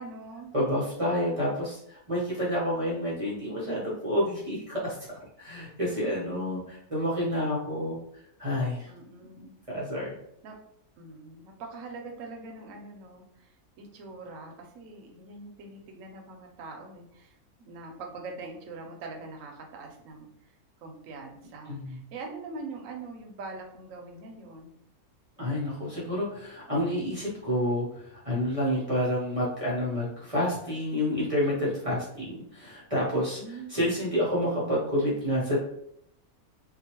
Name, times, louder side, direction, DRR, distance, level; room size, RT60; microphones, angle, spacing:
voice 1, 0.0-0.5 8.8-9.6 10.4-10.6 11.0-17.3 17.6-20.5 20.8-24.7 33.4-33.8, right 3 dB, 65° right, 2 dB, 0.9 m, -43 dB
voice 2, 0.5-5.0 5.4-8.0 8.4-8.9 9.7-10.1 21.7-22.0 25.4-33.4 33.7-35.6, equal, 35° right, -7 dB, 0.6 m, -29 dB
2.9 x 2.4 x 2.8 m, 0.73 s
omnidirectional pair, 1.6 m